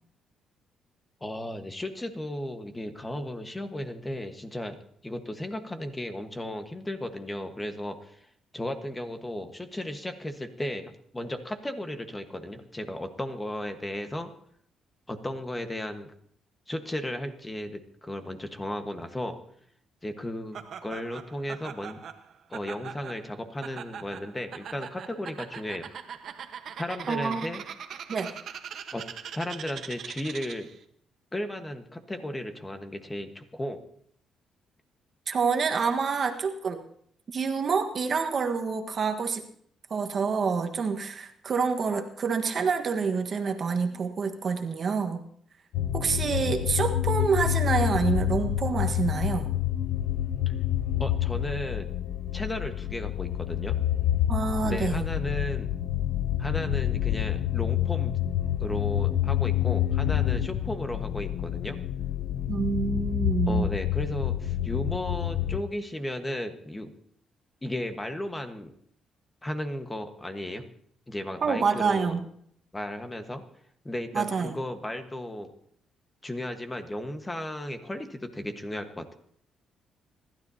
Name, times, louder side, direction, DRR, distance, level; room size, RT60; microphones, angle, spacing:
voice 1, 1.2-4.8 5.0-8.2 8.5-14.3 15.1-16.1 16.7-19.4 20.0-22.0 22.5-25.9 26.8-27.6 28.9-29.0 29.3-30.7 31.3-33.8 50.5-50.6 51.0-51.9 52.3-53.8 54.6-55.7 56.4-58.1 58.6-61.8 63.5-66.9 67.6-68.7 69.4-70.6 71.1-72.2 72.7-73.4 73.8-75.5 76.2-79.1, left 1 dB, 15° left, 7 dB, 1.4 m, -35 dB
Laughter, 20.5-30.8, right 7 dB, 65° right, 1.2 m, -42 dB
voice 2, 27.1-27.4 28.1-28.3 35.3-36.8 37.3-39.4 39.9-45.2 45.9-49.5 54.3-55.0 62.5-63.7 71.4-72.2 74.1-74.5, right 5 dB, 50° right, 6 dB, 1.4 m, -27 dB
sound 1, 45.7-65.6, left 12 dB, 90° left, 0.5 m, -28 dB
26.5 x 12.0 x 2.8 m, 0.63 s
cardioid pair, 90°, 0 cm